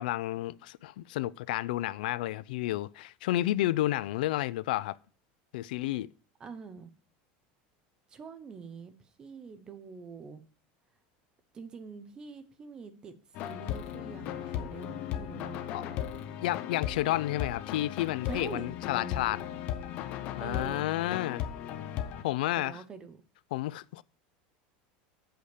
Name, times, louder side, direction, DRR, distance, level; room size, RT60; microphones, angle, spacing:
voice 1, 0.0-5.0 5.5-6.1 15.7-15.8 16.4-19.4 20.4-21.4 22.2-22.8 23.5-24.0, left 15 dB, 85° left, 0.3 m, -31 dB
voice 2, 6.4-6.9 8.1-10.4 11.5-13.1 13.4-16.4 18.2-19.6 20.4-20.9 22.6-23.2, right 5 dB, 20° right, 0.8 m, -45 dB
sound 1, 13.4-22.2, left 10 dB, 40° left, 0.8 m, -37 dB
7.9 x 4.9 x 6.6 m
supercardioid pair, 180°, 5 cm